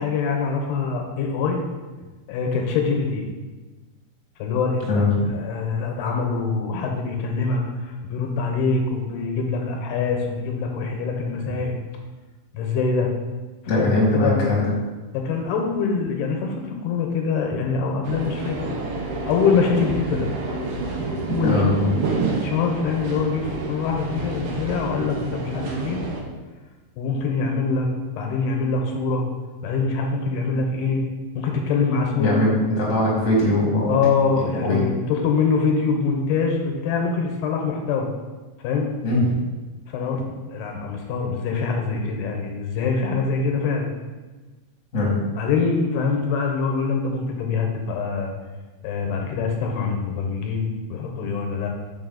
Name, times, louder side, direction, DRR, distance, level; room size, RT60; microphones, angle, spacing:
voice 1, 0.0-1.6 2.3-3.3 4.4-5.0 5.3-11.8 12.5-13.1 13.7-14.4 15.1-18.7 19.3-20.3 21.3-21.9 22.3-26.0 27.0-27.9 28.2-29.2 29.6-31.1 31.4-32.3 33.9-38.1 38.6-38.9 39.9-43.9 45.4-48.3 48.8-51.7, left 5 dB, 85° left, 2 dB, 2.7 m, -24 dB
voice 2, 4.9-5.3 13.7-14.7 21.4-21.9 32.2-33.9 34.3-34.8 39.0-39.3 44.9-45.1, left 2 dB, 45° left, -5 dB, 0.9 m, -21 dB
sound 1, 18.0-26.2, right 3 dB, 80° right, 2.0 m, -29 dB
6.1 x 4.8 x 3.9 m, 1.3 s
omnidirectional pair, 4.7 m